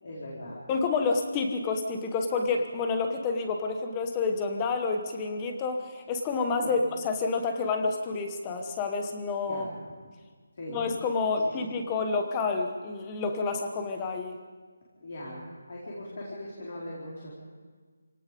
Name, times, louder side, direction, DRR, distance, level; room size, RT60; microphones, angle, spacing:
voice 1, 0.0-0.6 6.6-6.8 9.5-9.7 10.5-10.8 11.4-11.5 15.0-17.3, left 1 dB, 40° left, -5 dB, 4.7 m, -40 dB
voice 2, 0.7-9.7 10.7-14.4, left 4 dB, 10° left, 5 dB, 1.1 m, -29 dB
26.5 x 18.5 x 5.3 m, 1.5 s
hypercardioid pair, 180°, 0 cm